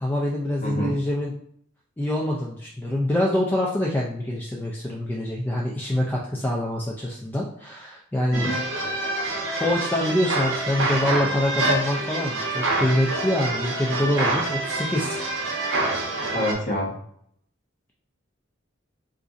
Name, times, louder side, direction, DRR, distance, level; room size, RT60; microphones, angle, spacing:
voice 1, 0.0-1.3 2.0-8.5 9.6-15.2, left 1 dB, 10° left, -2 dB, 0.3 m, -25 dB
voice 2, 0.6-0.9 8.3-8.6 16.3-16.9, equal, 40° left, -3 dB, 0.9 m, -26 dB
sound 1, 8.3-16.5, right 2 dB, 65° right, 0.7 m, -26 dB
3.9 x 2.5 x 2.4 m, 0.67 s
head